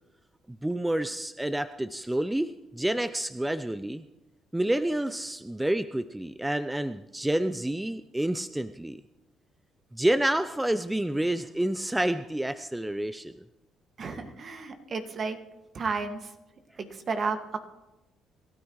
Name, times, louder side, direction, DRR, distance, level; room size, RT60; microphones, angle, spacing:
voice 1, 0.5-4.0 4.5-9.0 9.9-13.3, right 1 dB, 10° right, 12 dB, 0.6 m, -29 dB
voice 2, 14.0-15.4 15.7-16.3 16.8-17.6, right 4 dB, 50° right, 5 dB, 2.0 m, -32 dB
26.5 x 13.0 x 3.2 m, 1.0 s
supercardioid pair, 60°, 0 cm